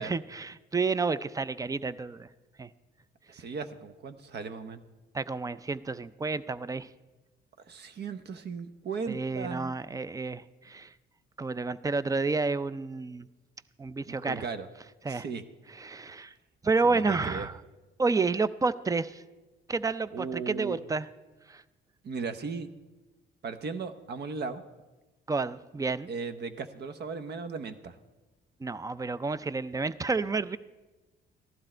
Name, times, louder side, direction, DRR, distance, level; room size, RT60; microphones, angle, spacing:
voice 1, 0.0-2.3 2.6-2.7 5.1-6.9 9.1-10.9 11.4-13.3 13.8-14.4 15.0-15.3 15.8-16.3 16.6-17.5 18.0-19.2 19.7-21.0 21.5-21.6 25.3-26.1 28.6-30.6, right 4 dB, 15° right, 16 dB, 0.5 m, -30 dB
voice 2, 3.3-4.8 7.6-9.7 14.0-14.7 15.1-15.4 16.9-17.5 20.1-20.8 22.0-22.7 23.4-24.6 26.1-28.0, right 5 dB, 55° right, 11 dB, 1.0 m, -37 dB
15.0 x 12.0 x 4.4 m, 1.1 s
cardioid pair, 90°, 20 cm